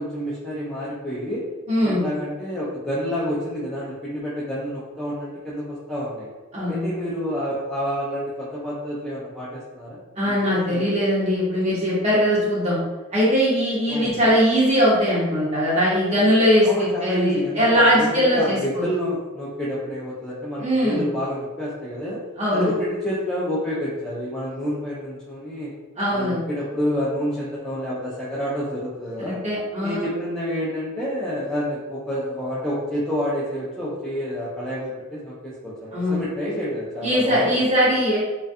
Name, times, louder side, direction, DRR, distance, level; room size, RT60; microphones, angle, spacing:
voice 1, 0.0-1.4 1.8-6.3 6.6-10.0 10.2-10.3 10.7-10.9 13.9-14.3 16.6-22.2 22.5-25.7 26.1-29.4 29.8-37.6, equal, ahead, -9 dB, 0.3 m, -28 dB
voice 2, 1.7-2.0 6.5-6.9 10.2-12.8 13.1-18.8 20.6-21.0 22.4-22.7 26.0-26.4 29.2-30.0 35.9-36.2 37.0-38.2, equal, 30° right, -7 dB, 0.9 m, -20 dB
2.3 x 2.2 x 2.6 m, 1.2 s
head